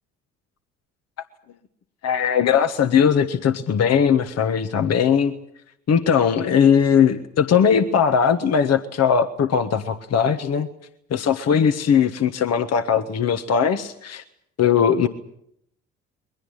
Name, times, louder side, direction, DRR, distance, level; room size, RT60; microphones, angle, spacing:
voice 1, 2.0-5.3 5.9-10.7 11.1-14.2 14.6-15.1, left 7 dB, 55° left, 8 dB, 1.5 m, -19 dB
22.0 x 17.5 x 9.9 m, 0.75 s
hypercardioid pair, 55°, 31 cm